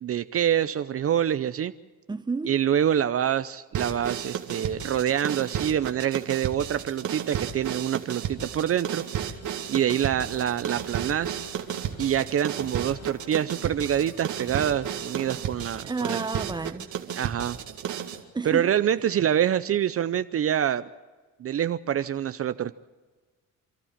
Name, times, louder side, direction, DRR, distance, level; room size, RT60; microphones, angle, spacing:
voice 1, 0.0-1.7 2.5-9.0 9.7-11.4 12.0-16.2 17.1-17.6 18.4-20.9 21.4-22.7, right 10 dB, 50° right, 0.6 m, -26 dB
voice 2, 2.1-2.5 15.8-16.9 18.3-18.7, right 4 dB, 15° right, 0.9 m, -31 dB
sound 1, 3.7-18.2, right 9 dB, 80° right, 2.0 m, -33 dB
sound 2, 9.9-15.6, left 6 dB, 60° left, 1.7 m, -50 dB
28.5 x 13.0 x 7.4 m
cardioid pair, 90°, 30 cm